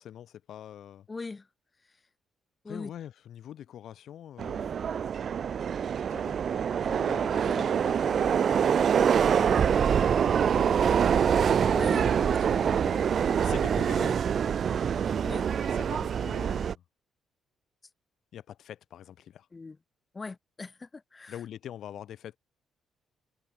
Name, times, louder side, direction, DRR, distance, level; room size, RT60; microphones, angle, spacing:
voice 1, 0.0-1.1 2.7-4.8 6.1-6.4 6.8-8.5 8.9-14.0 15.6-16.8 18.3-19.5 21.3-22.4, left 10 dB, 70° left, 4.5 m, -45 dB
voice 2, 1.1-1.5 2.6-2.9 7.4-7.7 11.7-12.1 13.9-14.2 15.2-15.5 19.5-19.8 20.1-21.4, left 3 dB, 25° left, 3.5 m, -40 dB
Subway metro underground, 4.4-16.7, right 7 dB, 55° right, 1.1 m, -25 dB
cardioid pair, 90°, 0 cm